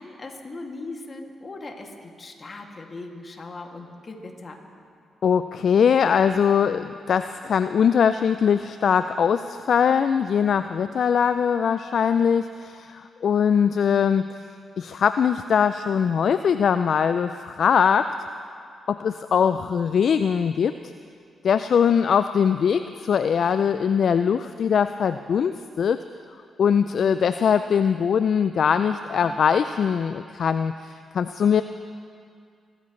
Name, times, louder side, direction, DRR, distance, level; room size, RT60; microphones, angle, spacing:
voice 1, 0.0-4.6, left 2 dB, 45° left, 1 dB, 2.3 m, -39 dB
voice 2, 5.2-14.3 14.8-18.1 18.9-20.7 21.4-26.0 26.6-31.6, left 7 dB, 65° left, 11 dB, 0.3 m, -21 dB
25.0 x 13.0 x 3.2 m, 2.3 s
supercardioid pair, 50°, 0 cm